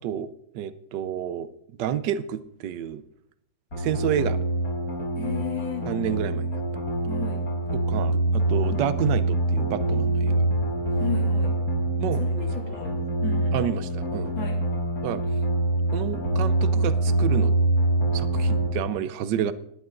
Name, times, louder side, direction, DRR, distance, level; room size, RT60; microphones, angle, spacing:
voice 1, 0.0-1.5 1.8-3.0 3.8-4.4 5.9-6.5 7.7-10.5 12.0-12.2 13.5-14.3 15.0-15.2 15.9-17.5 18.1-19.5, right 10 dB, 65° right, 14 dB, 1.3 m, -29 dB
sound 1, 3.7-18.7, right 1 dB, 40° left, 4.4 m, -25 dB
voice 2, 5.2-5.9 7.1-7.4 11.0-11.6 12.0-13.6 14.4-14.6, left 7 dB, 65° left, 1 dB, 3.6 m, -34 dB
18.5 x 10.5 x 3.8 m, 0.72 s
omnidirectional pair, 2.3 m